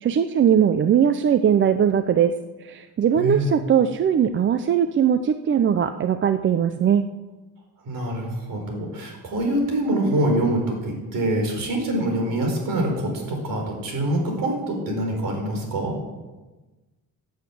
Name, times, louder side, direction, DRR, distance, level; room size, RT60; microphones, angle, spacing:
voice 1, 0.0-2.3 2.6-7.0, right 8 dB, 35° right, 10 dB, 0.5 m, -20 dB
voice 2, 3.2-3.5 7.8-16.0, right 1 dB, 65° right, 2 dB, 4.5 m, -25 dB
12.0 x 7.9 x 8.4 m, 1.2 s
cardioid pair, 145°, 36 cm